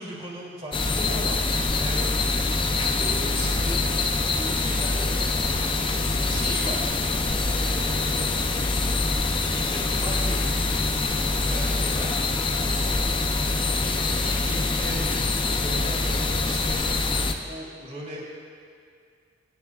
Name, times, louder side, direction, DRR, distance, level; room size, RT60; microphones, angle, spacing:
voice 1, 0.0-2.1 2.9-3.8 4.3-5.2 5.6-5.9 6.3-6.9 7.4-8.4 9.5-10.4 11.4-12.1 13.7-15.1 15.6-16.9 17.4-18.3, equal, 30° right, -4 dB, 3.0 m, -37 dB
sound 1, 0.7-17.3, left 3 dB, 25° left, 0.6 m, -25 dB
23.5 x 11.0 x 2.5 m, 2.2 s
head